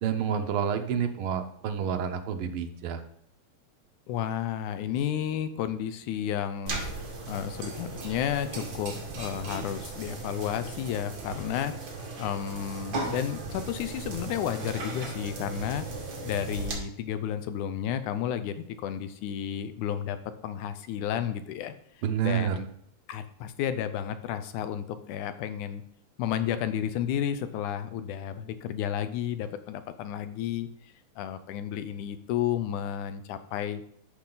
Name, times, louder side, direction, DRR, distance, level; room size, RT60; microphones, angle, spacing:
voice 1, 0.0-3.0 22.0-22.6, right 8 dB, 75° right, 5 dB, 1.2 m, -29 dB
voice 2, 4.1-6.8 7.3-11.7 12.2-15.9 16.2-20.2 20.4-21.7 22.2-22.5 23.1-25.8 26.2-30.7 31.2-33.8, left 9 dB, 85° left, 11 dB, 2.2 m, -32 dB
sound 1, 6.7-16.7, right 3 dB, 40° right, 2.3 m, -37 dB
13.0 x 5.9 x 3.9 m, 0.67 s
omnidirectional pair, 3.5 m